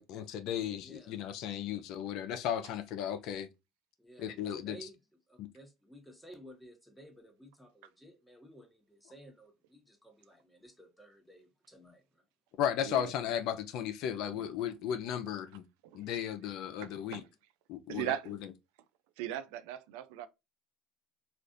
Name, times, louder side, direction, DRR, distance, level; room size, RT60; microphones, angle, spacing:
voice 1, 0.0-3.5 4.2-4.9 5.4-5.5 12.6-15.6 15.9-17.2 17.7-18.5, left 9 dB, 70° left, 0.6 m, -35 dB
voice 2, 0.8-1.2 4.0-5.0 5.3-12.2, right 1 dB, ahead, 1.2 m, -55 dB
voice 3, 15.8-16.2 16.8-17.2 17.9-18.4 19.2-20.3, right 11 dB, 85° right, 0.4 m, -38 dB
3.3 x 2.5 x 2.5 m
supercardioid pair, 90°, 0 cm